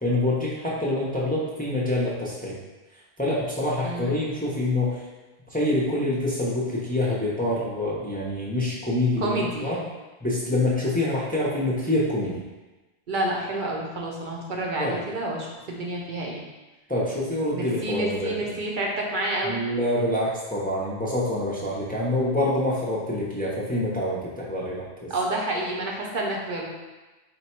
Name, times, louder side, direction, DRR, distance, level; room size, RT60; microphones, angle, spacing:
voice 1, 0.0-2.6 3.2-5.0 5.5-9.8 10.2-12.4 14.8-15.0 16.9-18.5 19.4-25.1, left 1 dB, 10° left, -6 dB, 0.5 m, -26 dB
voice 2, 3.8-4.1 9.2-9.8 13.1-16.4 17.5-19.6 25.1-26.7, right 1 dB, 55° right, -2 dB, 0.7 m, -29 dB
4.2 x 2.2 x 4.2 m, 1.2 s
omnidirectional pair, 1.1 m